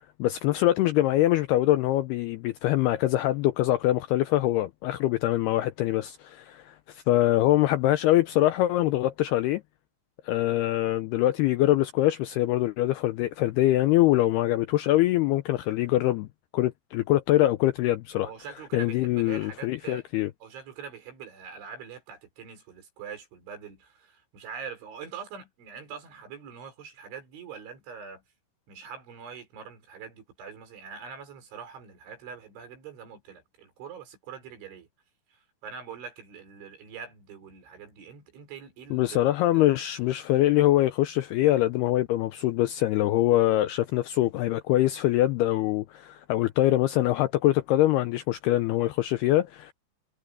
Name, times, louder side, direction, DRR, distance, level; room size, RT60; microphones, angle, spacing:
voice 1, 0.2-9.6 10.2-16.3 16.5-18.3 18.7-20.3 38.9-49.7, left 15 dB, 90° left, 2.3 m, -24 dB
voice 2, 18.2-20.1 20.4-28.2 28.7-34.9 35.3-39.3 39.5-39.7, right 6 dB, 80° right, 7.4 m, -43 dB
omnidirectional pair, 5.4 m